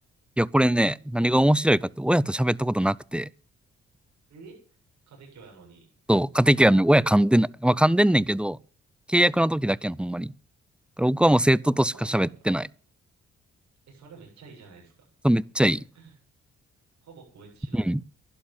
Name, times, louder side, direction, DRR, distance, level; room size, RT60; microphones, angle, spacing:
voice 1, 0.4-3.3 6.1-8.6 9.1-10.3 11.0-12.7 15.2-15.8 17.7-18.0, right 1 dB, 5° right, 0.5 m, -21 dB
voice 2, 5.1-5.9 9.8-9.9 11.7-12.4 13.9-14.9 15.7-16.2 17.0-17.8, right 4 dB, 70° right, 7.4 m, -49 dB
11.5 x 11.0 x 7.2 m
hypercardioid pair, 45°, 30 cm